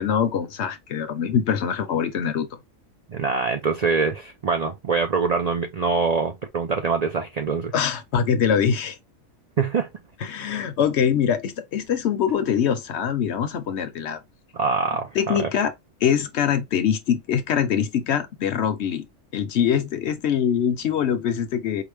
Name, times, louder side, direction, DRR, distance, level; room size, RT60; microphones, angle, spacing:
voice 1, 0.0-2.6 7.7-9.0 10.2-14.2 15.1-15.7 16.0-19.1 19.3-21.8, left 8 dB, 65° left, 0.8 m, -23 dB
voice 2, 3.1-7.7 9.6-9.9 14.5-15.5, right 4 dB, 60° right, 0.4 m, -24 dB
4.7 x 2.1 x 3.3 m
omnidirectional pair, 1.4 m